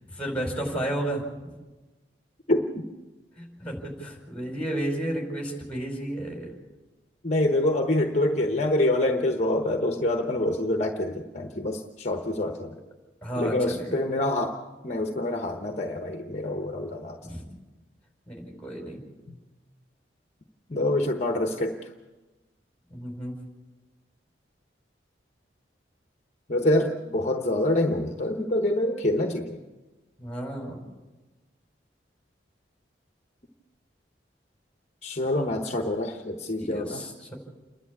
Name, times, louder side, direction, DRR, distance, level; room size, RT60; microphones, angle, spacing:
voice 1, 0.1-1.2 3.4-6.5 13.2-14.0 17.2-17.4 18.3-19.0 22.9-23.4 30.2-30.8 36.6-37.4, right 1 dB, 5° left, 1 dB, 5.0 m, -32 dB
voice 2, 2.5-2.8 7.2-12.8 13.4-17.2 19.3-19.4 20.7-21.8 26.5-29.6 35.0-37.0, left 1 dB, 40° left, 4 dB, 1.1 m, -26 dB
29.0 x 11.0 x 8.4 m, 1.2 s
head